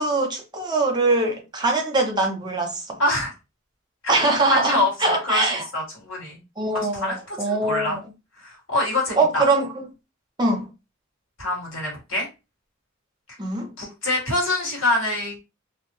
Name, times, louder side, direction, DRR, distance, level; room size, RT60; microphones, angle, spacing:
voice 1, 0.0-3.0 4.1-5.7 6.6-8.0 9.2-9.8 10.4-10.7 13.4-13.7, right 2 dB, 20° right, 0.6 m, -23 dB
voice 2, 3.0-3.3 4.0-4.1 4.5-6.4 6.9-8.0 8.4-9.4 11.4-12.3 13.8-15.4, left 1 dB, 80° left, 1.5 m, -25 dB
2.5 x 2.1 x 3.0 m
head